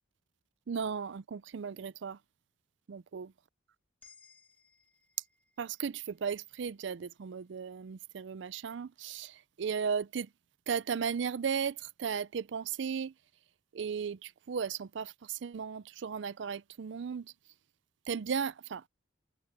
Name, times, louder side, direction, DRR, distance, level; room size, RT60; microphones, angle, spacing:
voice 1, 0.7-2.2 2.9-3.3 5.6-10.3 10.7-13.1 13.7-17.3 18.1-18.9, right 6 dB, 60° right, 0.4 m, -36 dB
sound 1, 4.0-8.3, left 5 dB, 5° left, 2.1 m, -65 dB
head